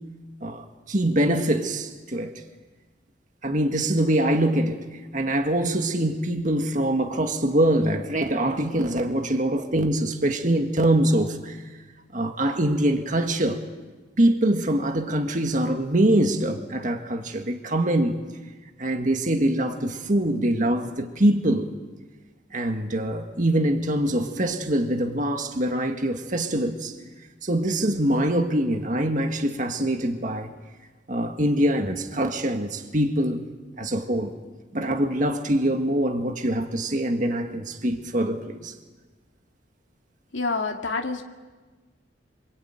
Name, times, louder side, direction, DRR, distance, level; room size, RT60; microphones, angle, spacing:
voice 1, 0.4-2.4 3.4-11.6 12.1-13.6 14.2-18.2 18.8-21.7 22.5-26.9 27.4-30.5 31.1-33.5 33.8-34.3 34.7-38.7, right 1 dB, 45° right, 1.8 m, -24 dB
voice 2, 40.3-41.2, left 3 dB, 90° left, 2.1 m, -27 dB
27.0 x 24.0 x 9.1 m
head